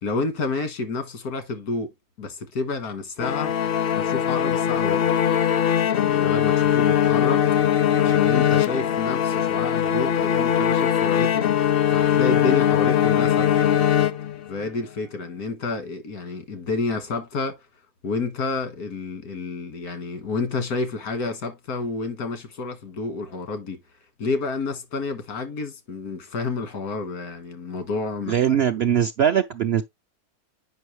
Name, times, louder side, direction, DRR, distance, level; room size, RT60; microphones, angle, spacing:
voice 1, 0.0-1.9 2.2-3.5 3.9-5.1 6.0-7.4 8.0-11.5 11.9-13.5 14.5-17.6 18.0-23.8 24.2-28.6, left 3 dB, 90° left, 1.9 m, -29 dB
sound 1, 3.2-14.7, left 9 dB, 65° left, 0.5 m, -21 dB
voice 2, 28.3-29.8, right 9 dB, 70° right, 0.6 m, -21 dB
7.7 x 5.5 x 3.1 m
omnidirectional pair, 1.6 m